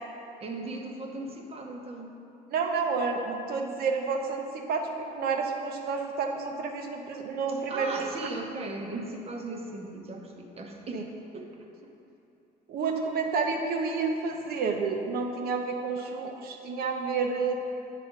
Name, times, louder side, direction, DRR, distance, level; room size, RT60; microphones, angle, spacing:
voice 1, 0.4-2.1 7.7-11.1 11.3-11.6, right 2 dB, 35° right, 2 dB, 0.9 m, -37 dB
voice 2, 2.5-8.1 10.9-11.0 12.7-17.5, right 4 dB, 65° right, 3 dB, 0.9 m, -30 dB
8.3 x 4.2 x 5.1 m, 2.8 s
cardioid pair, 110°, 17 cm